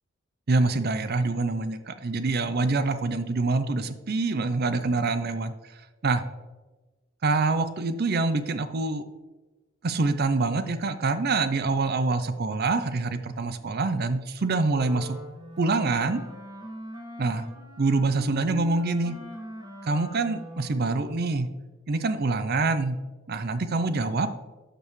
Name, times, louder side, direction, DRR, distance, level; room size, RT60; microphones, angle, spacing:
voice 1, 0.5-5.5 6.0-6.2 7.2-9.0 9.8-15.2 15.6-16.2 17.2-17.5 17.8-19.2 19.8-21.5 21.9-23.0 23.3-24.3, right 3 dB, 45° right, 11 dB, 0.5 m, -25 dB
Wind instrument woodwind instrument, 14.6-21.3, equal, 20° right, 1.7 m, -41 dB
12.0 x 5.3 x 3.2 m, 1.3 s
head